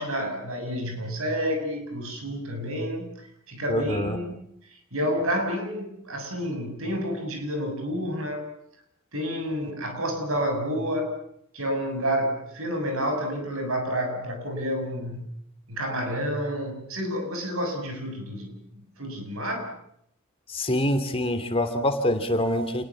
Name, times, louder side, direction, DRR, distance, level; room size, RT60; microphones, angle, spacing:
voice 1, 0.0-3.1 3.5-8.5 9.1-11.1 11.5-15.3 15.7-19.7, equal, 65° right, 5 dB, 7.0 m, -29 dB
voice 2, 3.7-4.2 20.5-22.8, left 1 dB, 25° left, 7 dB, 2.6 m, -25 dB
29.0 x 21.0 x 7.2 m, 0.73 s
head